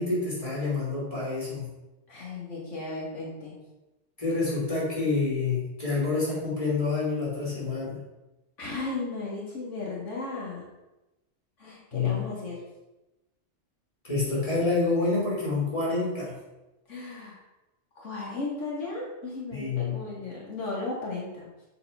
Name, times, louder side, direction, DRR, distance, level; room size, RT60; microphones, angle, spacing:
voice 1, 0.0-1.7 4.2-8.0 11.9-12.2 14.1-16.3 19.5-20.0, left 3 dB, 30° left, -6 dB, 3.3 m, -27 dB
voice 2, 2.1-3.6 8.6-10.6 11.6-12.6 16.9-17.4 18.0-21.5, left 3 dB, 85° left, -4 dB, 2.4 m, -35 dB
7.0 x 5.3 x 5.5 m, 1.0 s
omnidirectional pair, 1.2 m